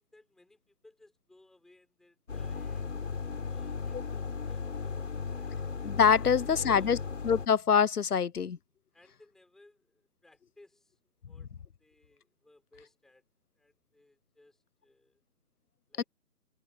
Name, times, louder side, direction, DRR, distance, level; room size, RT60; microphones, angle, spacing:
voice 1, 0.0-5.6 6.2-7.0 8.9-11.5 11.8-13.2 13.6-15.2 15.9-16.0, left 2 dB, ahead, 6.1 m, -62 dB
sound 1, 2.3-7.5, left 5 dB, 50° left, 6.5 m, -36 dB
voice 2, 5.8-7.0 7.2-8.6 16.0-16.1, left 7 dB, 70° left, 1.0 m, -25 dB
hypercardioid pair, 175°, 47 cm